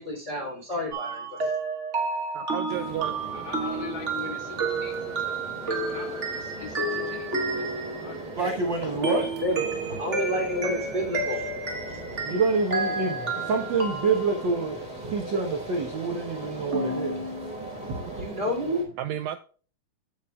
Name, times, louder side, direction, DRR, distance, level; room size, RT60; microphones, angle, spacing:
voice 1, 0.0-1.5 8.9-9.7 10.0-11.5 18.2-19.0, left 1 dB, 20° right, 2.8 m, -30 dB
sound 1, 0.9-8.5 9.0-14.7 16.7-17.5, right 3 dB, 35° right, 1.1 m, -31 dB
voice 2, 2.3-3.2 17.8-18.4 19.0-19.4, right 12 dB, 80° right, 1.7 m, -33 dB
sound 2, 2.7-18.8, right 1 dB, ahead, 2.8 m, -39 dB
voice 3, 3.3-5.2 5.6-7.7 8.0-8.3, left 5 dB, 85° left, 3.4 m, -42 dB
voice 4, 8.4-9.3 11.8-18.2, right 4 dB, 60° right, 1.2 m, -28 dB
15.5 x 5.8 x 2.3 m
omnidirectional pair, 3.6 m